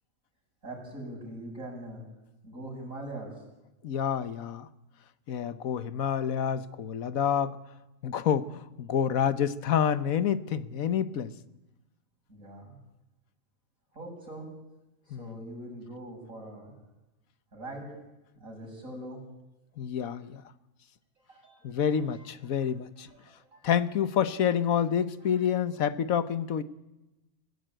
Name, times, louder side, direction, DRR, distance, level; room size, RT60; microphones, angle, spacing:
voice 1, 0.6-2.0 2.4-3.3 12.3-12.7 14.0-14.5 15.1-16.7 17.5-17.9 18.4-19.2 21.3-22.0 22.5-22.7 23.1-23.7 25.3-25.4, right 1 dB, 75° right, -1 dB, 7.5 m, -42 dB
voice 2, 3.8-4.7 5.3-7.6 8.0-11.3 15.1-15.4 19.8-20.4 21.6-23.1 23.6-26.6, left 8 dB, 80° left, 14 dB, 1.4 m, -28 dB
24.0 x 16.0 x 9.0 m, 1.0 s
omnidirectional pair, 1.4 m